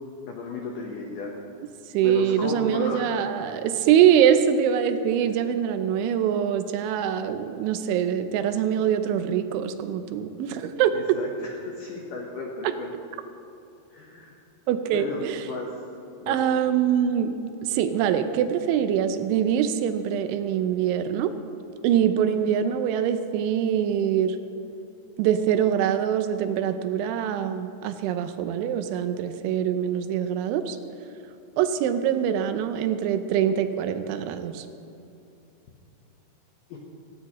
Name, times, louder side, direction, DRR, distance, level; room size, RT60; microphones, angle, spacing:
voice 1, 0.3-1.4 2.0-3.2 10.9-12.9 13.9-14.4 14.9-15.7 16.2-16.4 36.7-36.8, left 3 dB, 90° left, 0 dB, 1.9 m, -34 dB
voice 2, 1.9-11.2 12.6-12.7 14.7-15.4 16.3-21.3 21.8-24.4 25.2-30.8 31.6-34.7, right 9 dB, 80° right, 9 dB, 3.0 m, -24 dB
18.0 x 16.0 x 3.1 m, 2.8 s
omnidirectional pair, 5.5 m